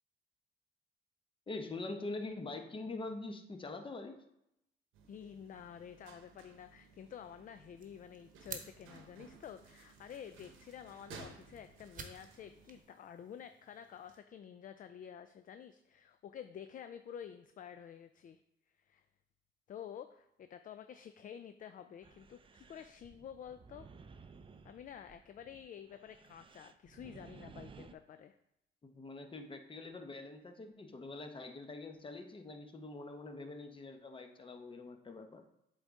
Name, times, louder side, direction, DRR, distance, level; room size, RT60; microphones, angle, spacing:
voice 1, 1.5-4.2 28.8-35.4, left 2 dB, 25° left, 6 dB, 0.9 m, -44 dB
sound 1, 4.9-12.8, right 5 dB, 85° right, 0.9 m, -58 dB
voice 2, 5.1-18.4 18.8-19.0 19.7-23.9 24.6-28.4, left 8 dB, 45° left, 9 dB, 0.4 m, -50 dB
sound 2, 7.8-14.2, right 5 dB, 45° right, 1.0 m, -54 dB
sound 3, 22.0-27.9, right 5 dB, 25° right, 0.4 m, -56 dB
7.6 x 4.0 x 3.6 m, 0.83 s
cardioid pair, 90°, 20 cm